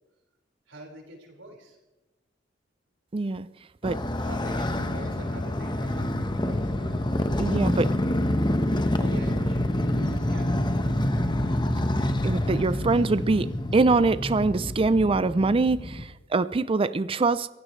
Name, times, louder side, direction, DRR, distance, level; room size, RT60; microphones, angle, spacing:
voice 1, 0.7-1.8 3.9-7.0 7.4-8.2 8.9-10.8, right 1 dB, 85° right, 0 dB, 4.9 m, -46 dB
voice 2, 3.1-3.5 3.8-4.0 7.4-7.9 12.2-17.5, right 3 dB, 30° right, 15 dB, 0.4 m, -23 dB
Motorcycle, 3.8-16.0, left 1 dB, 25° left, 1.1 m, -27 dB
27.0 x 16.0 x 3.2 m, 1.1 s
head